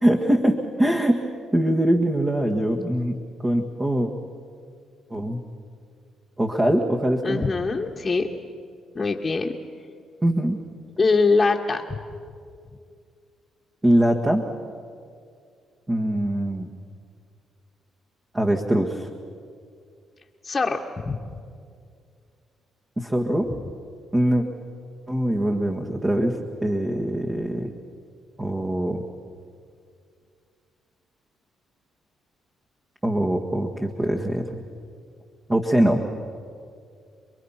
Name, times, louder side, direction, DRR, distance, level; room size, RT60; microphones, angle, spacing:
voice 1, 0.0-4.1 5.1-5.4 6.4-7.5 10.2-10.6 13.8-14.4 15.9-16.7 18.3-19.1 23.0-23.5 24.1-24.4 25.1-27.7 28.4-29.0 33.0-34.6 35.5-36.0, right 1 dB, 20° right, 0 dB, 1.8 m, -22 dB
voice 2, 7.2-8.3 8.9-9.5 11.0-12.0 20.4-21.2, left 4 dB, 25° left, -3 dB, 1.5 m, -23 dB
29.0 x 22.0 x 5.8 m, 2.3 s
cardioid pair, 90°, 0 cm